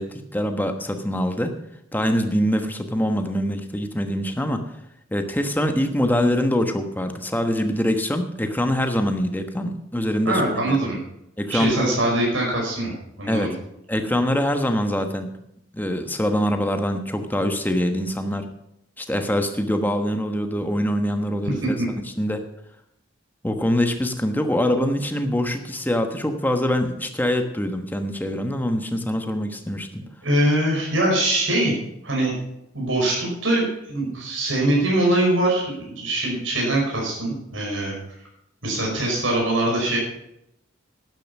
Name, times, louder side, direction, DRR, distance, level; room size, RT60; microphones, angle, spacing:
voice 1, 0.0-1.5 1.9-4.6 5.1-10.8 11.4-11.9 13.3-13.6 13.9-15.3 15.7-18.5 19.0-21.8 22.2-22.4 23.4-30.0, equal, 10° left, 6 dB, 1.2 m, -24 dB
voice 2, 10.2-11.0 11.5-13.5 21.6-21.9 30.2-31.8 32.0-32.3 32.7-37.9 38.6-40.0, right 1 dB, 75° right, -2 dB, 5.4 m, -22 dB
12.0 x 11.0 x 5.5 m, 0.81 s
head